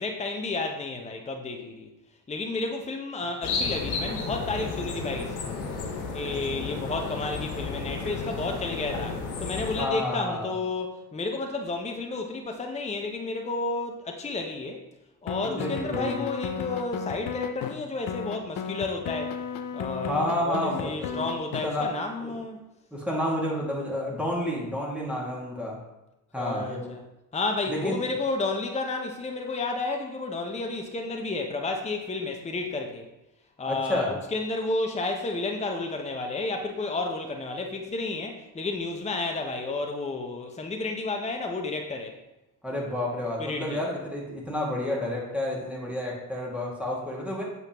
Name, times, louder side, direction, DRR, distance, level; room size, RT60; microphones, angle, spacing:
voice 1, 0.0-1.9 2.3-5.6 6.1-14.8 15.2-19.4 19.7-22.6 26.4-27.0 27.3-33.1 33.6-42.2 43.4-43.8, left 3 dB, 15° left, 3 dB, 0.9 m, -31 dB
sound 1, 3.4-9.8, left 4 dB, 70° left, 1.3 m, -32 dB
voice 2, 9.8-10.5 15.4-16.2 20.1-21.2 21.6-21.9 22.2-22.3 22.9-25.8 26.3-26.9 27.7-28.0 33.7-34.2 42.6-47.4, left 1 dB, 5° right, -4 dB, 2.3 m, -30 dB
sound 2, 15.3-17.7 18.1-21.7, left 7 dB, 45° left, 0.8 m, -34 dB
7.8 x 5.4 x 3.1 m, 0.95 s
hypercardioid pair, 55°, 47 cm